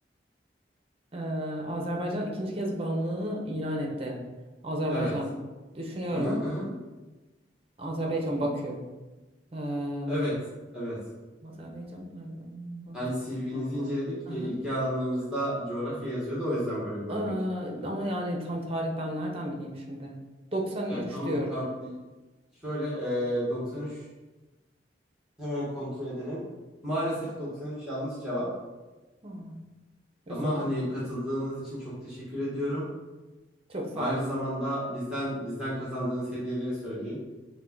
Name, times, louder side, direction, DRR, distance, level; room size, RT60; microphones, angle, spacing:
voice 1, 1.1-4.1 4.6-5.3 5.7-6.4 7.8-8.8 9.5-10.3 11.4-13.0 13.5-13.7 14.3-14.5 17.1-20.1 20.5-21.6 29.2-29.6 30.3-30.7 33.7-34.3, equal, 35° right, 0 dB, 0.7 m, -32 dB
voice 2, 6.1-6.7 10.1-10.3 10.7-11.0 12.9-17.3 17.8-17.9 20.9-21.9 22.6-24.0 25.4-26.4 26.8-28.5 30.3-32.8 33.9-37.2, equal, 5° right, -10 dB, 1.1 m, -32 dB
5.2 x 2.2 x 3.8 m, 1.2 s
head